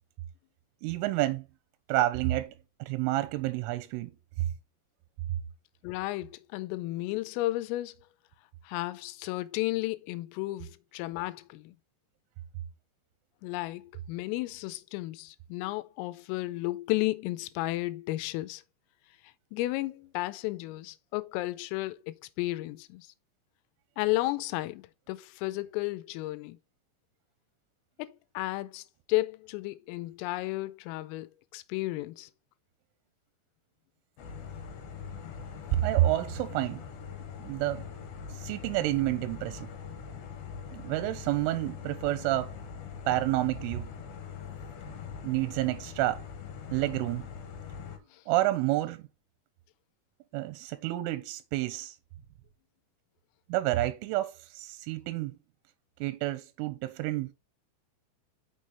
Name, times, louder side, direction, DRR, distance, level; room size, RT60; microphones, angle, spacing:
voice 1, 0.8-1.4 1.9-2.5 2.8-4.1 35.7-36.8 37.4-37.9 38.3-39.7 40.7-42.6 43.1-43.9 45.2-46.2 46.7-47.3 48.3-49.0 50.3-52.0 53.5-55.4 56.0-57.3, right 16 dB, 85° right, 3.1 m, -29 dB
voice 2, 5.8-8.0 8.6-11.8 13.4-18.6 19.5-23.1 24.0-26.6 28.0-32.3 48.1-48.2, left 19 dB, 90° left, 3.3 m, -33 dB
sound 1, 34.2-48.0, left 7 dB, 65° left, 2.5 m, -42 dB
6.6 x 6.3 x 4.1 m
omnidirectional pair, 5.9 m